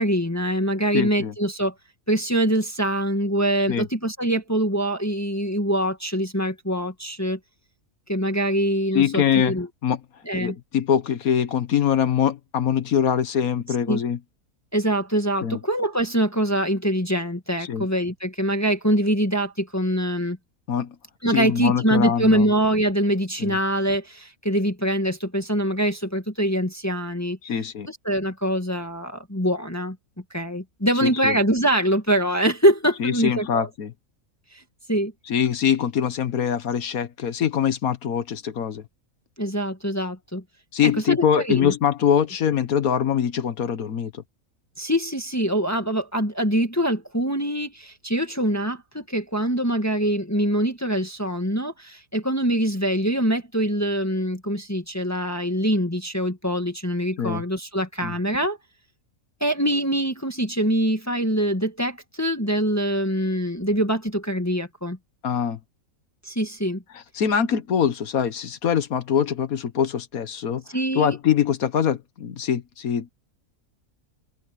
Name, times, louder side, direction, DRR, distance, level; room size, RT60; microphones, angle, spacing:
voice 1, 0.0-1.7 2.1-7.4 8.1-9.7 10.3-10.6 13.9-14.0 14.7-20.4 21.2-27.4 27.9-30.0 30.3-33.7 34.9-35.1 39.4-40.4 40.8-41.7 44.8-58.6 59.4-65.0 66.3-66.8 70.7-71.2, right 1 dB, 10° left, 1.8 m, -24 dB
voice 2, 0.9-1.3 3.7-3.9 8.9-9.6 9.8-10.0 10.3-14.2 15.4-15.6 17.6-17.9 20.7-20.9 21.3-22.5 23.4-23.6 27.4-27.9 31.0-31.4 33.0-33.9 35.3-38.8 40.7-44.1 57.2-57.4 58.0-58.2 65.2-65.6 67.1-70.6 70.9-73.1, left 8 dB, 80° left, 1.6 m, -23 dB
omnidirectional pair, 1.5 m